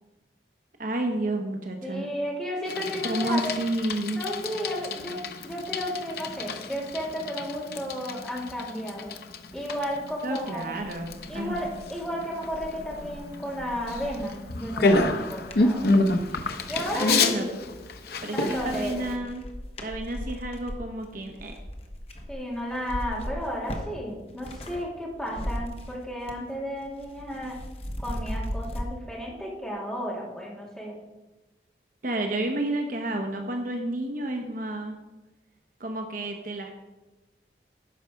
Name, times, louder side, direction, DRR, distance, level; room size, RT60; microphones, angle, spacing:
voice 1, 0.8-2.1 3.0-4.2 10.2-11.7 16.9-17.5 18.2-19.4 19.8-21.6 32.0-35.0 35.8-36.7, right 1 dB, 50° right, 3 dB, 0.9 m, -30 dB
voice 2, 1.8-3.5 4.1-5.2 5.4-9.1 9.5-10.7 11.3-16.0 16.7-17.5 18.3-19.1 22.3-27.6 28.0-31.0, equal, 5° left, -5 dB, 2.4 m, -33 dB
Bicycle, 2.6-19.1, left 2 dB, 60° left, 0.7 m, -29 dB
sound 1, 10.8-16.9 17.5-18.1 18.4-24.8 25.1-26.5 26.8-28.9, equal, 35° left, 1.0 m, -38 dB
10.0 x 4.9 x 6.3 m, 1.1 s
head